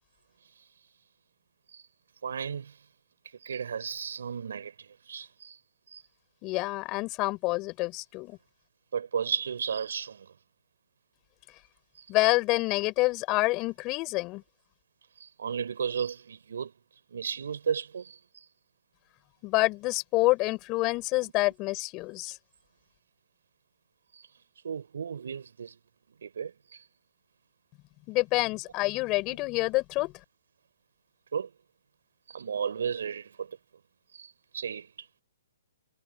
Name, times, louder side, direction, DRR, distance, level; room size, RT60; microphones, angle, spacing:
voice 1, 2.2-2.7 3.4-5.6 5.9-6.0 8.9-10.3 15.2-16.7 17.1-18.2 24.1-24.3 24.6-25.7 26.2-26.8 31.3-31.5 32.3-33.5 34.1-34.9, right 7 dB, 70° right, 6.0 m, -34 dB
voice 2, 6.4-8.4 12.1-14.4 19.4-22.4 28.1-30.1, left 22 dB, 25° left, 6.0 m, -27 dB
hypercardioid pair, 160°, 0 cm